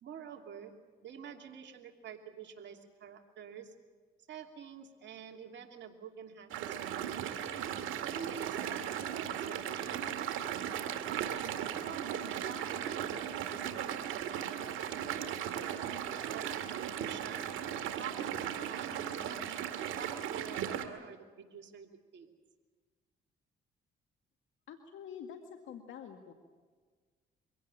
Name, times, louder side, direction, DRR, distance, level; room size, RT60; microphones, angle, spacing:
voice 1, 0.0-3.7 4.3-7.6 8.1-10.4 11.8-15.6 16.3-22.3, right 7 dB, 65° right, 3 dB, 2.9 m, -48 dB
sound 1, 6.5-20.9, right 9 dB, 80° right, 2.0 m, -37 dB
voice 2, 24.7-26.3, left 8 dB, 75° left, 5 dB, 2.0 m, -47 dB
24.0 x 17.5 x 8.9 m, 1.5 s
supercardioid pair, 65°, 20 cm